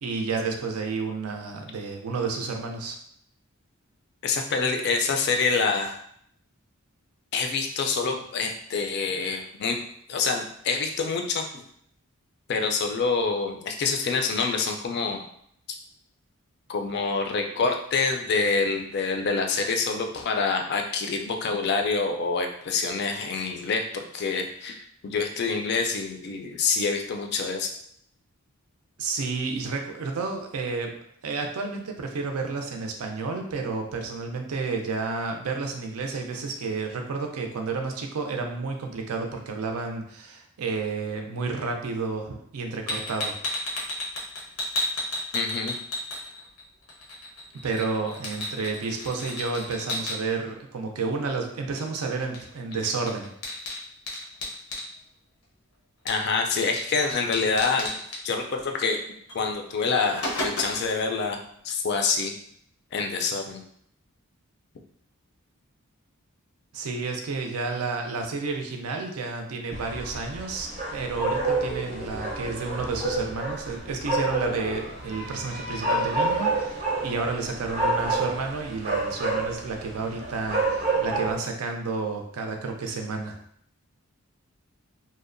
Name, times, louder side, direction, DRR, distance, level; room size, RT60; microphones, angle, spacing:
voice 1, 0.0-3.0 29.0-30.9 31.2-43.3 47.6-53.3 66.7-83.4, right 4 dB, 90° right, 3 dB, 0.4 m, -31 dB
voice 2, 4.2-6.0 7.3-9.8 10.1-11.4 12.5-15.2 16.7-27.7 45.3-45.7 56.0-57.9 58.2-59.0 59.3-61.4 61.6-62.3 62.9-63.6, left 4 dB, 50° left, 4 dB, 0.3 m, -26 dB
sound 1, 42.9-46.6 46.9-50.2 52.3-52.5 52.7-54.9 56.1-56.4 56.8-56.9 57.1-58.2 59.3-59.4 59.8-60.9, left 1 dB, 90° left, 0.6 m, -32 dB
sound 2, 69.7-81.4, right 2 dB, 30° right, 0.5 m, -29 dB
2.7 x 2.0 x 2.5 m, 0.68 s
head